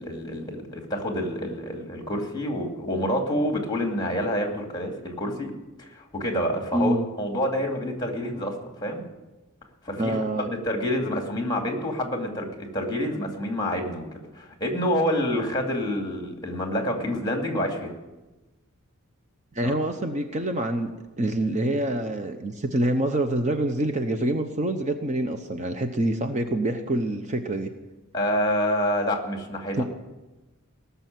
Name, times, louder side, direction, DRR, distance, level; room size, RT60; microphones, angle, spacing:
voice 1, 0.0-5.5 5.8-8.5 8.8-9.0 9.8-17.9 19.6-19.7 28.1-29.8, equal, 20° left, 2 dB, 2.5 m, -28 dB
voice 2, 6.7-7.1 10.0-10.5 19.5-20.9 21.2-27.7 29.8-29.9, right 1 dB, 35° right, 6 dB, 0.9 m, -26 dB
18.5 x 7.0 x 9.2 m, 1.1 s
head